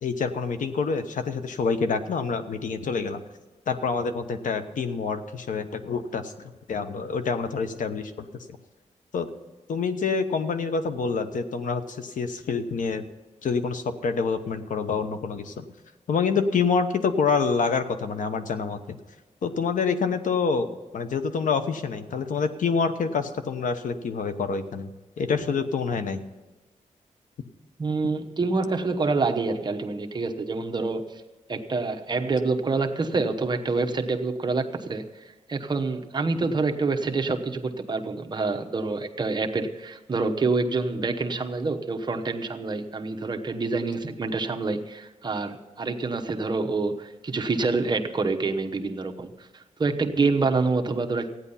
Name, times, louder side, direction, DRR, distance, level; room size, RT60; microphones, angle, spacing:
voice 1, 0.0-3.2 3.7-8.3 9.1-9.3 9.7-13.1 13.4-15.7 16.1-19.0 19.4-20.7 20.9-24.9 25.2-26.2, left 5 dB, 80° left, 9 dB, 1.0 m, -27 dB
voice 2, 27.8-31.2 31.5-51.3, right 3 dB, 35° right, 4 dB, 1.0 m, -27 dB
15.0 x 9.7 x 5.6 m, 1.2 s
wide cardioid pair, 120°, 13 cm